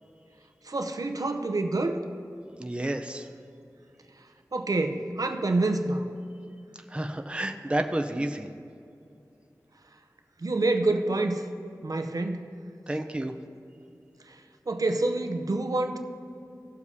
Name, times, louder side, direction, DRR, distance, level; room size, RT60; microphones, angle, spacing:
voice 1, 0.6-2.0 4.5-6.1 10.4-11.4 11.8-12.4 14.3-14.4 14.7-16.0, right 2 dB, 60° right, 5 dB, 0.7 m, -27 dB
voice 2, 2.6-3.3 6.9-8.5 12.9-13.3, right 1 dB, 15° right, 5 dB, 0.6 m, -30 dB
17.0 x 7.1 x 2.8 m, 2.6 s
wide cardioid pair, 60°, 7 cm